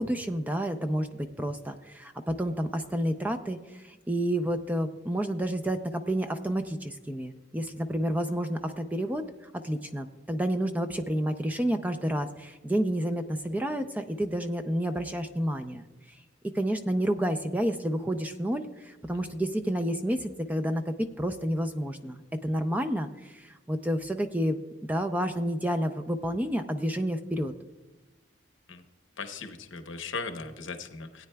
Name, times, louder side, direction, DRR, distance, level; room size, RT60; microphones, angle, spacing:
voice 1, 0.0-15.8 16.5-24.6 24.9-27.5, equal, 10° right, 6 dB, 0.4 m, -30 dB
voice 2, 29.2-31.3, left 4 dB, 70° left, 7 dB, 0.9 m, -38 dB
17.0 x 9.2 x 2.3 m, 1.2 s
head